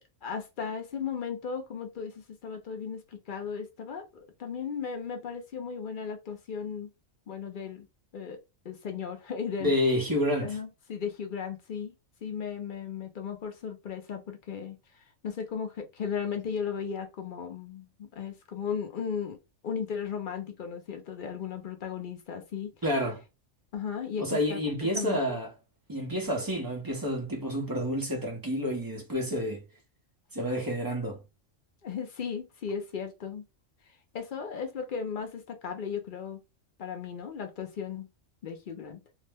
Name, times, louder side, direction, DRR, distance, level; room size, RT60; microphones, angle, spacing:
voice 1, 0.0-6.9 7.3-7.9 8.1-8.4 8.6-9.7 10.4-11.9 12.2-19.4 19.6-22.7 23.7-25.4 31.8-33.4 33.9-36.4 36.8-38.1 38.4-39.0, left 6 dB, 55° left, 0.6 m, -36 dB
voice 2, 9.6-10.6 22.8-23.2 24.2-25.5 25.9-29.6 30.3-31.2, equal, 25° right, 0.5 m, -29 dB
2.5 x 2.0 x 3.3 m
omnidirectional pair, 1.3 m